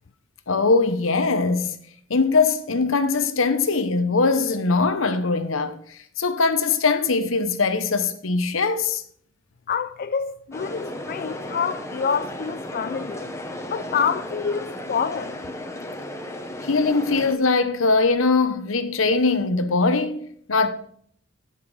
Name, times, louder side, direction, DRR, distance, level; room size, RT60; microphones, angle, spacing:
voice 1, 0.5-1.8 2.1-9.0 16.6-20.7, left 4 dB, 85° left, 1.0 m, -21 dB
voice 2, 9.7-13.3 13.7-15.4, left 6 dB, 50° left, 0.4 m, -27 dB
sound 1, 10.5-17.3, left 1 dB, 15° left, 1.0 m, -34 dB
13.0 x 5.9 x 4.8 m
head